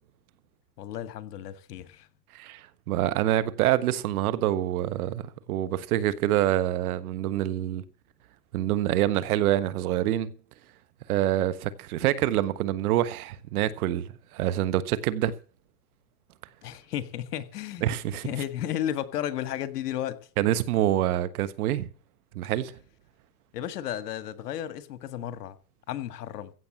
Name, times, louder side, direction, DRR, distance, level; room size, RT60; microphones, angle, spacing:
voice 1, 0.8-2.1 16.6-17.9 18.2-20.2 23.5-25.6 25.9-26.5, left 11 dB, 65° left, 1.8 m, -33 dB
voice 2, 2.3-7.8 8.5-10.3 11.1-14.1 14.3-15.3 17.8-18.3 20.4-21.9 22.3-22.7, right 13 dB, 60° right, 1.5 m, -26 dB
16.0 x 7.4 x 7.4 m
hypercardioid pair, 125°, 50 cm